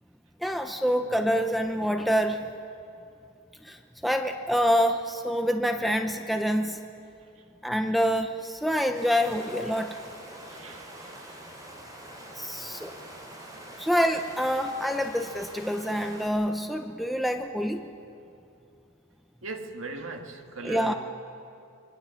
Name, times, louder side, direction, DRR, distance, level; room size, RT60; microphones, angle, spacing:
voice 1, 0.4-2.5 3.6-3.8 4.0-6.8 7.6-10.0 12.4-12.9 13.8-17.8 20.6-20.9, equal, ahead, 0.7 m, -26 dB
Water, 8.9-16.3, right 1 dB, 15° right, 3.7 m, -44 dB
voice 2, 10.4-11.4 19.4-20.9, right 3 dB, 70° right, 1.9 m, -39 dB
26.0 x 22.0 x 7.1 m
head